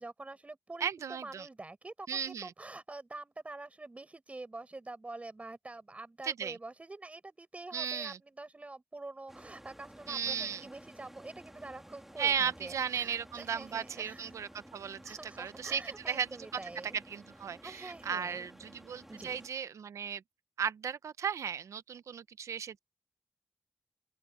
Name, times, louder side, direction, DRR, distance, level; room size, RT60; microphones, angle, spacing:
voice 1, 0.0-14.3 15.0-17.0 17.6-18.5 19.1-19.4, right 2 dB, 25° right, 7.3 m, -46 dB
voice 2, 0.8-1.5 2.1-2.5 6.2-6.6 7.7-8.2 10.1-10.6 12.2-16.3 17.1-20.2 20.6-22.8, right 7 dB, 85° right, 0.7 m, -35 dB
sound 1, 9.3-19.5, equal, 5° right, 3.2 m, -54 dB
open air
wide cardioid pair, 95°, 5 cm